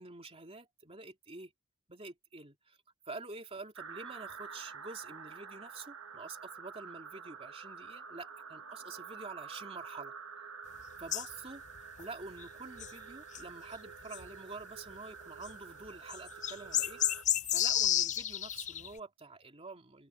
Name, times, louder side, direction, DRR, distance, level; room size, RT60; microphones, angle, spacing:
voice 1, 0.0-1.5 1.9-2.8 3.1-10.1 11.0-11.6 12.0-20.1, right 3 dB, 30° right, 2.8 m, -47 dB
sound 1, 3.8-17.2, right 5 dB, 65° right, 1.5 m, -48 dB
sound 2, 11.1-11.3 11.8-12.0 12.4-12.5 12.8-12.9 13.3-13.4 14.1-14.3 15.4-15.5 16.1-18.9, left 12 dB, 35° left, 0.4 m, -31 dB
open air
head